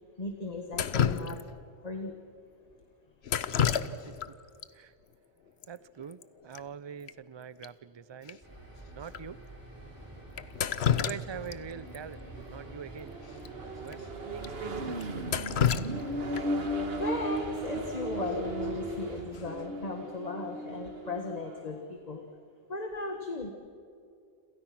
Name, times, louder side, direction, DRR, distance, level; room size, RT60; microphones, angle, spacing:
voice 1, 0.2-1.4 1.8-2.1 16.4-22.2 22.7-23.5, left 3 dB, 35° left, 1.6 m, -36 dB
Drip, 0.7-1.7 3.2-4.3 4.6-4.7 5.6-5.7 6.0-6.2 6.5-6.6 7.1-7.2 7.6-7.7 8.3-8.4 9.1-9.2 10.4-11.6 11.9-12.0 13.4-13.5 13.9-14.0 14.4-14.5 15.0-16.6 18.6-18.9 19.3-19.7, left 8 dB, 70° left, 1.1 m, -30 dB
voice 2, 5.7-8.4 8.9-9.4 10.9-13.1 13.8-15.2, right 7 dB, 35° right, 0.5 m, -44 dB
sound 1, 8.4-19.2, right 1 dB, 20° right, 7.5 m, -47 dB
Accelerating revving vroom, 11.3-21.7, right 1 dB, 65° right, 1.8 m, -37 dB
29.0 x 27.0 x 6.0 m
omnidirectional pair, 1.1 m